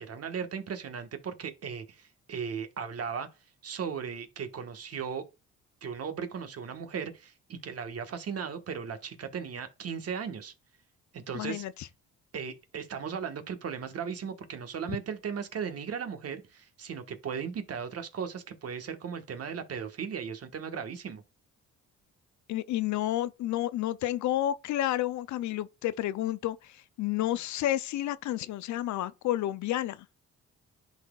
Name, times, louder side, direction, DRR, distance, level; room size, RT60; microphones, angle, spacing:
voice 1, 0.0-3.3 3.6-5.2 5.8-10.5 11.1-11.6 12.3-21.2, right 6 dB, 55° right, 1.4 m, -37 dB
voice 2, 11.3-11.7 22.5-30.1, left 13 dB, 70° left, 0.5 m, -30 dB
11.0 x 4.2 x 2.3 m
cardioid pair, 90°, 30 cm